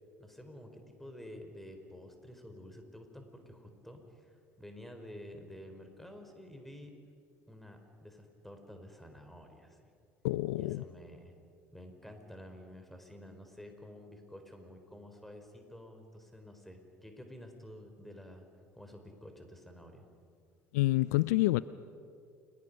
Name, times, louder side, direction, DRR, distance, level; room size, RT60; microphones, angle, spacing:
voice 1, 0.2-6.9 7.5-9.9 10.6-11.3 11.7-18.5 18.7-20.1, left 1 dB, ahead, 5 dB, 4.4 m, -50 dB
voice 2, 10.2-10.8 20.7-21.6, left 19 dB, 70° left, 18 dB, 0.4 m, -28 dB
29.5 x 21.5 x 5.4 m, 2.4 s
figure-of-eight pair, 60°, 9 cm